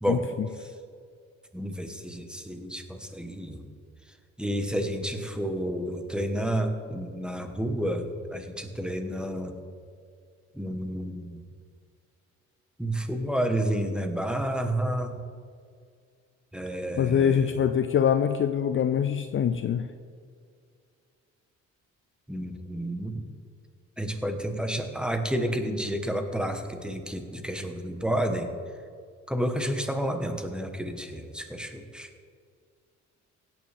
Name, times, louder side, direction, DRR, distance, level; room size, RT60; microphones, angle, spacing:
voice 1, 0.1-0.5 16.9-19.9, left 8 dB, 40° left, 9 dB, 0.5 m, -24 dB
voice 2, 1.5-3.7 4.4-9.6 10.5-11.4 12.8-15.2 16.5-17.6 22.3-23.2 24.0-28.5 29.3-32.1, right 1 dB, 5° right, 5 dB, 1.3 m, -30 dB
16.5 x 9.2 x 3.5 m, 2.2 s
cardioid pair, 90°, 30 cm